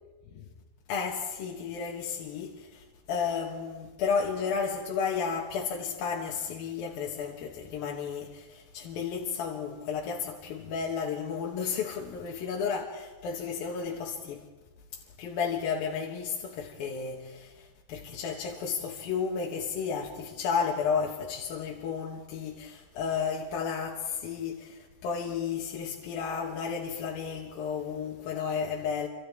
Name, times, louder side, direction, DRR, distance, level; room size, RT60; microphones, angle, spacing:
voice 1, 0.9-14.5 14.9-29.1, left 6 dB, 65° left, 2.9 m, -33 dB
29.0 x 25.5 x 3.6 m
omnidirectional pair, 4.9 m